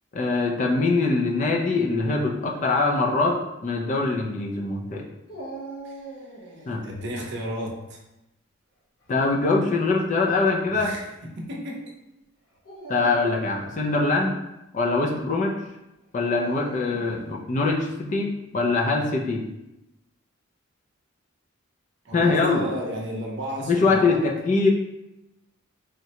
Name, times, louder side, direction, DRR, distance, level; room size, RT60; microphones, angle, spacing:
voice 1, 0.1-5.0 6.7-6.8 9.1-10.9 12.9-14.4 14.7-15.6 16.1-19.4 22.1-22.7 23.7-24.7, left 3 dB, 35° left, 1 dB, 0.4 m, -23 dB
Dog, 5.3-7.0 9.0-9.5 10.3-10.4 12.5-13.8 16.3-17.3, right 2 dB, 80° left, 0.8 m, -41 dB
voice 2, 6.4-8.0 10.7-11.9 22.0-24.2, equal, 55° right, 0 dB, 0.6 m, -34 dB
3.6 x 2.1 x 2.8 m, 0.92 s
head